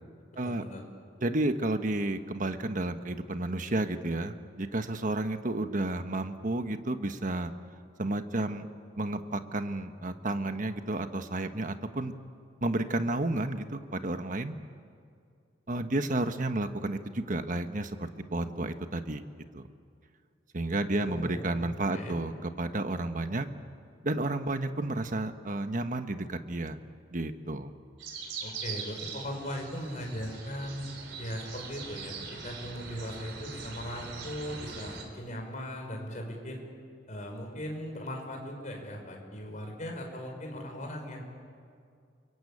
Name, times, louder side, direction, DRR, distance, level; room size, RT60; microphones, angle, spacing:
voice 1, 0.4-0.8 20.9-22.2 28.4-30.9 31.2-36.6 37.1-41.2, equal, 45° left, 2 dB, 5.7 m, -39 dB
voice 2, 1.2-7.5 8.0-8.7 9.0-12.1 12.6-14.5 15.7-19.2 19.5-19.7 20.5-23.5 24.0-26.8 27.1-27.7, right 2 dB, 45° right, 8 dB, 1.3 m, -31 dB
sound 1, 28.0-35.0, right 5 dB, 80° right, 3.8 m, -42 dB
29.5 x 23.0 x 8.7 m, 2.3 s
head